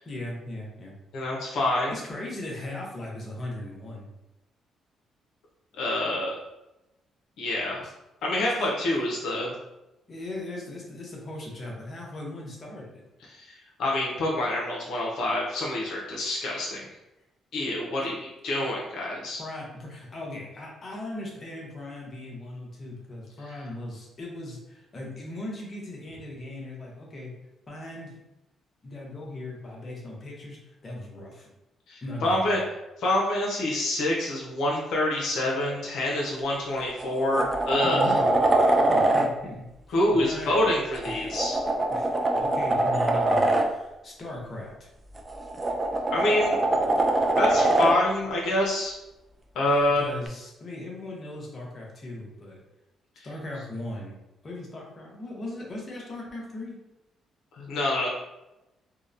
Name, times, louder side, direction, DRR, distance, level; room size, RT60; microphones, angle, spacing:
voice 1, 0.0-0.9 1.9-4.1 7.8-7.9 8.4-8.7 10.1-13.0 19.4-27.3 27.7-28.1 28.8-31.5 32.0-32.6 37.8-38.3 38.5-40.6 41.9-42.1 42.4-44.9 49.6-52.6 53.2-56.8, left 1 dB, 40° left, -2 dB, 0.8 m, -38 dB
voice 2, 1.1-2.0 5.7-6.3 7.4-7.8 8.2-9.5 13.3-16.9 17.5-19.4 31.9-32.6 33.0-38.1 39.9-41.6 46.1-46.6 47.4-48.9 49.5-50.1 53.2-53.3 57.6-58.1, left 1 dB, 75° left, -3 dB, 0.6 m, -26 dB
sound 1, 36.4-36.5 37.0-39.3 40.9-43.7 45.2-48.0 50.3-50.4, right 2 dB, 25° right, 0.3 m, -23 dB
2.8 x 2.1 x 2.4 m, 0.95 s
cardioid pair, 90°, 0 cm